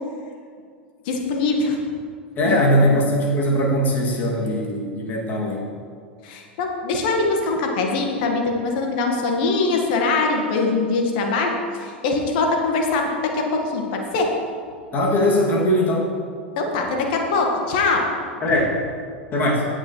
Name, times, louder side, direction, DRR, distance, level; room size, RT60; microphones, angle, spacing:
voice 1, 1.0-1.8 2.4-2.9 6.2-14.3 16.6-18.1, left 3 dB, 55° left, 2 dB, 1.7 m, -22 dB
voice 2, 2.4-5.7 14.9-16.1 18.4-18.7 19.3-19.6, equal, 30° left, -3 dB, 2.5 m, -20 dB
17.5 x 6.4 x 3.2 m, 2.1 s
figure-of-eight pair, 85°, 6 cm